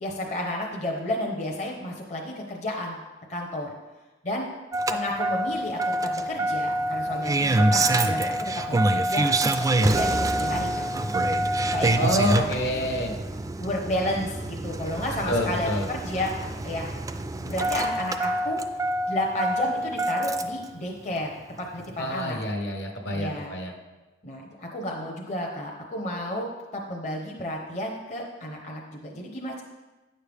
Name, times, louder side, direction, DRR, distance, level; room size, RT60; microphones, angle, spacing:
voice 1, 0.0-3.0 3.3-3.7 4.2-4.5 4.9-9.3 9.6-10.9 11.6-12.6 13.6-16.9 17.3-18.6 19.1-22.4 23.1-23.5 24.2-29.6, left 1 dB, 40° left, -1 dB, 0.8 m, -32 dB
Engine starting, 4.7-20.6 21.9-22.0, right 1 dB, 20° right, 0.3 m, -26 dB
voice 2, 12.0-13.1 15.3-15.9 22.0-23.8, left 1 dB, 65° left, 2 dB, 1.1 m, -27 dB
9.5 x 6.6 x 3.5 m, 1.2 s
head